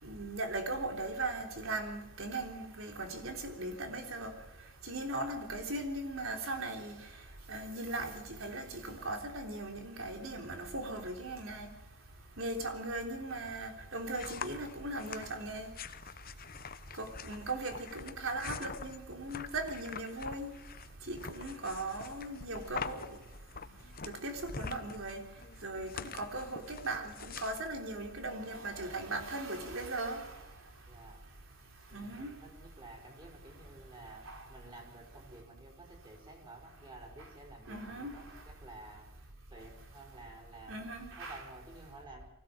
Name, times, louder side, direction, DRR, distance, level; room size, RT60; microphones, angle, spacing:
voice 1, 0.0-4.3 4.8-7.0 7.5-11.7 12.4-15.7 17.0-20.5 21.1-23.1 24.0-25.2 25.6-30.4 31.9-32.3 34.3-34.4 37.7-38.2 40.7-41.4, right 2 dB, 80° right, 3.5 m, -38 dB
sound 1, 13.4-28.7, left 5 dB, 45° left, 0.9 m, -46 dB
voice 2, 30.8-31.2 31.9-39.1 39.5-42.3, right 2 dB, 25° right, 5.1 m, -52 dB
24.5 x 16.0 x 7.6 m
head